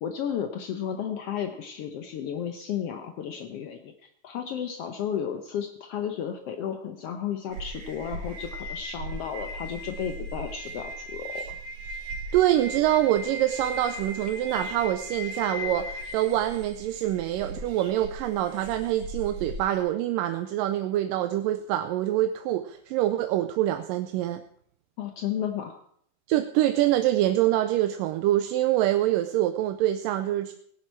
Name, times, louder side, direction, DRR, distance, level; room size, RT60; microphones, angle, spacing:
voice 1, 0.0-11.6 25.0-25.8, left 8 dB, 80° left, 5 dB, 1.4 m, -33 dB
sound 1, 7.5-19.8, equal, 60° right, 3.1 m, -38 dB
voice 2, 12.3-24.4 26.3-30.5, right 13 dB, 80° right, 8 dB, 2.3 m, -25 dB
17.5 x 11.0 x 4.5 m, 0.65 s
omnidirectional pair, 3.9 m